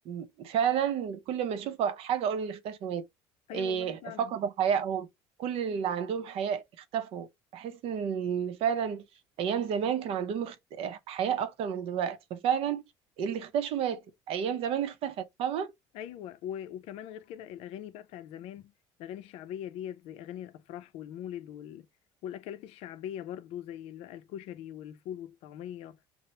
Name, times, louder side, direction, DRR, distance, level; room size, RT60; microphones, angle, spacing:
voice 1, 0.1-3.0 3.5-5.1 5.4-7.3 7.5-9.0 9.4-12.8 13.2-15.7, right 8 dB, 60° right, 0.6 m, -31 dB
voice 2, 3.5-4.3 15.9-18.7 19.0-21.9 22.2-26.0, left 10 dB, 70° left, 0.4 m, -41 dB
2.8 x 2.0 x 3.1 m
supercardioid pair, 105°, 11 cm